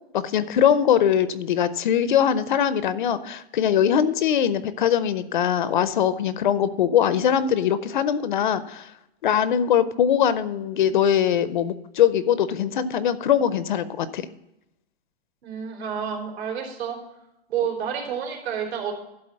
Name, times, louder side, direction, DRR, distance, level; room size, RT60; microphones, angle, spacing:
voice 1, 0.1-8.9 9.2-14.3, left 9 dB, 50° left, 14 dB, 0.5 m, -22 dB
voice 2, 15.4-17.0 17.5-18.9, right 8 dB, 75° right, -1 dB, 3.5 m, -29 dB
12.0 x 4.0 x 7.4 m, 0.86 s
hypercardioid pair, 175°, 32 cm